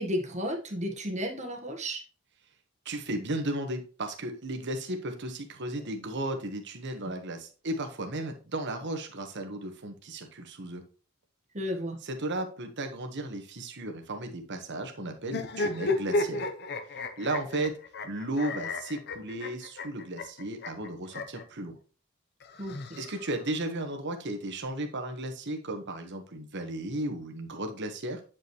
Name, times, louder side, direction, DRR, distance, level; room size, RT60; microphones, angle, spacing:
voice 1, 0.0-2.0 11.5-12.0 22.6-23.0, equal, 35° right, 3 dB, 1.4 m, -33 dB
voice 2, 2.8-10.8 12.0-16.5 17.2-17.8 18.0-21.8 23.0-28.2, right 1 dB, 60° right, 5 dB, 1.3 m, -35 dB
sound 1, 15.2-21.4 22.4-23.5, left 2 dB, 55° left, 0.8 m, -33 dB
8.8 x 5.5 x 3.1 m, 0.36 s
head